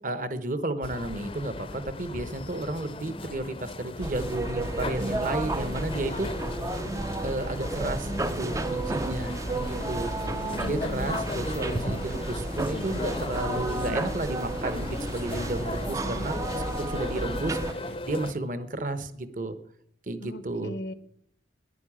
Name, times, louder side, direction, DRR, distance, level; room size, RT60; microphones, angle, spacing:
voice 1, 0.0-6.3 7.2-10.1 10.6-17.8 18.0-19.6 20.1-20.7, right 2 dB, 45° right, 12 dB, 1.1 m, -32 dB
sound 1, 0.8-18.3, left 2 dB, 30° left, 0.6 m, -37 dB
sound 2, 4.0-17.7, right 2 dB, 20° right, 0.4 m, -32 dB
sound 3, 8.2-18.0, right 1 dB, 65° right, 3.6 m, -46 dB
voice 2, 9.7-11.2 20.2-20.9, equal, 80° left, 15 dB, 0.9 m, -39 dB
10.5 x 9.9 x 8.6 m, 0.70 s
head